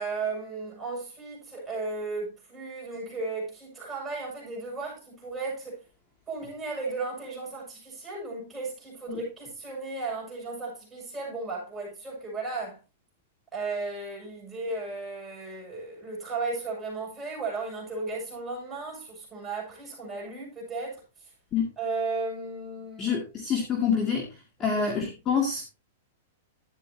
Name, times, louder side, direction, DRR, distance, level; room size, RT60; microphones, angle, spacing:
voice 1, 0.0-5.8 6.3-12.8 13.5-21.0 21.8-23.2 24.6-24.9, right 3 dB, 5° right, 7.5 m, -35 dB
voice 2, 23.0-24.3 24.6-25.7, left 6 dB, 20° left, 2.1 m, -26 dB
12.0 x 9.8 x 2.9 m
supercardioid pair, 160°, 0 cm